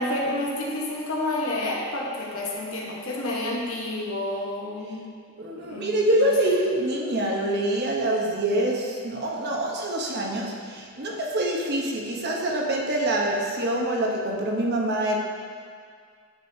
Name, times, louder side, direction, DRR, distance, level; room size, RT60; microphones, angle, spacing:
voice 1, 0.0-5.1 5.6-5.9 6.2-6.3, left 1 dB, 70° left, -3 dB, 1.2 m, -29 dB
voice 2, 5.4-15.2, right 1 dB, 50° right, -1 dB, 0.9 m, -25 dB
9.7 x 6.2 x 2.8 m, 2.1 s
head